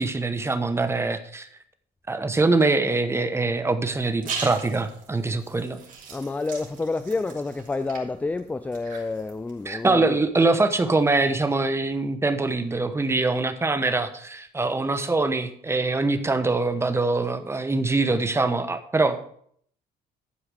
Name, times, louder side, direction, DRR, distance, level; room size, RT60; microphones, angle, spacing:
voice 1, 0.0-1.5 2.1-5.8 9.6-19.3, right 3 dB, 15° right, 1.0 m, -23 dB
sound 1, 3.9-10.0, right 5 dB, 50° right, 2.9 m, -40 dB
voice 2, 6.1-10.2, left 3 dB, 10° left, 0.3 m, -29 dB
11.5 x 4.9 x 6.3 m
cardioid pair, 110°, 17 cm